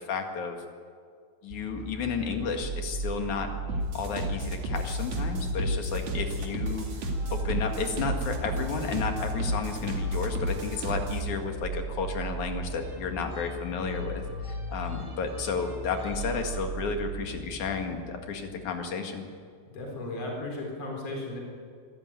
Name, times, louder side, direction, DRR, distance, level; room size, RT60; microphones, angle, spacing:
voice 1, 0.1-0.6 1.4-3.5 3.9-6.9 7.3-14.2 14.7-19.3, left 5 dB, 90° left, 4 dB, 3.4 m, -32 dB
sound 1, 1.5-18.8, right 1 dB, 25° right, 5.1 m, -37 dB
sound 2, 3.7-11.3, right 2 dB, 70° right, 3.7 m, -32 dB
voice 2, 19.7-21.4, left 2 dB, 55° left, -1 dB, 5.1 m, -35 dB
25.0 x 13.5 x 9.3 m, 2.1 s
omnidirectional pair, 3.3 m